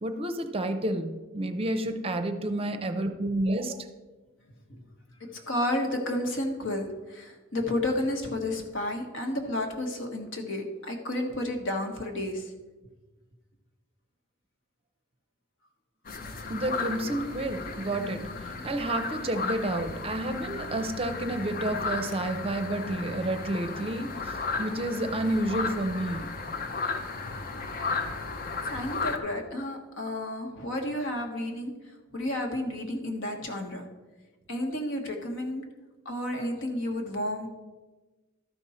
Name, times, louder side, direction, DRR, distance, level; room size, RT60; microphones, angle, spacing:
voice 1, 0.0-3.9 16.5-24.1 24.6-26.3, right 1 dB, 30° right, 8 dB, 0.6 m, -30 dB
voice 2, 5.2-12.5 28.6-31.7 32.1-33.8 34.5-35.6 36.0-37.5, left 1 dB, 65° left, 3 dB, 1.4 m, -31 dB
sound 1, 16.1-29.2, left 4 dB, 45° left, 0.7 m, -35 dB
12.5 x 5.3 x 4.3 m, 1.2 s
head